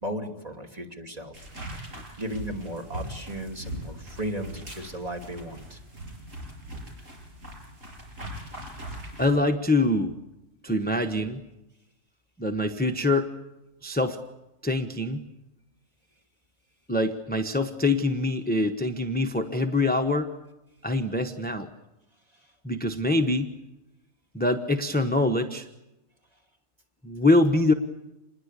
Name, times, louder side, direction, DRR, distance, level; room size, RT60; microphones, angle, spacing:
voice 1, 0.0-1.3 1.7-1.8 2.2-5.8, right 1 dB, 30° right, 2 dB, 2.9 m, -35 dB
sound 1, 1.3-9.4, equal, 80° right, 7.1 m, -40 dB
voice 2, 9.2-10.1 10.6-11.4 12.4-13.3 13.8-14.2 14.6-15.2 16.9-20.3 20.8-21.7 22.6-23.5 24.3-25.7 27.0-27.7, left 2 dB, 10° left, 6 dB, 1.0 m, -24 dB
27.5 x 21.0 x 8.4 m, 0.96 s
omnidirectional pair, 1.3 m